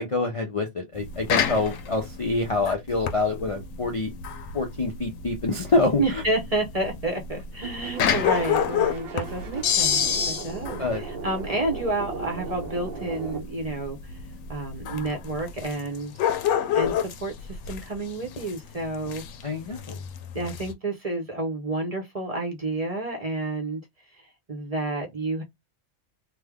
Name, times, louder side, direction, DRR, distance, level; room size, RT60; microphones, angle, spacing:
voice 1, 0.0-4.1 4.5-6.2 10.8-11.0 19.4-20.0, left 3 dB, 40° left, 0.5 m, -26 dB
sound 1, 0.9-20.7, left 8 dB, 90° left, 1.0 m, -29 dB
voice 2, 6.0-14.2 14.5-16.2 16.7-19.2 20.3-23.8 24.2-25.4, right 2 dB, 35° right, 0.8 m, -30 dB
sound 2, 7.6-13.4, right 4 dB, 55° right, 0.8 m, -38 dB
3.3 x 2.2 x 3.5 m
omnidirectional pair, 1.3 m